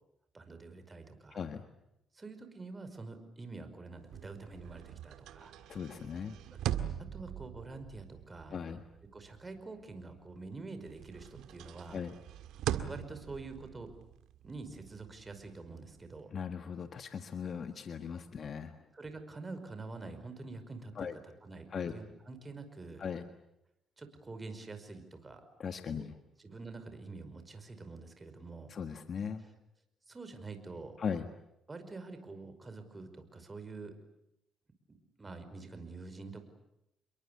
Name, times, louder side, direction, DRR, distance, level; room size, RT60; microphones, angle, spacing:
voice 1, 0.3-1.4 2.1-5.5 6.5-6.6 7.0-8.6 9.1-12.0 12.8-13.9 14.4-16.3 18.9-21.1 21.4-23.1 24.0-25.4 25.9-26.1 26.4-28.7 30.1-31.0 31.7-33.9 34.9-36.4, right 3 dB, 25° right, 8 dB, 5.3 m, -46 dB
voice 2, 1.3-1.6 5.7-6.4 8.5-8.8 11.9-12.1 16.3-18.8 21.0-21.1 21.7-21.9 23.0-23.2 25.6-26.1 28.7-29.4 31.0-31.3, left 6 dB, 50° left, 8 dB, 1.6 m, -38 dB
sound 1, 4.0-10.5 10.8-16.2, right 11 dB, 85° right, 1.8 m, -42 dB
28.5 x 22.5 x 8.3 m, 0.85 s
cardioid pair, 90°, 0 cm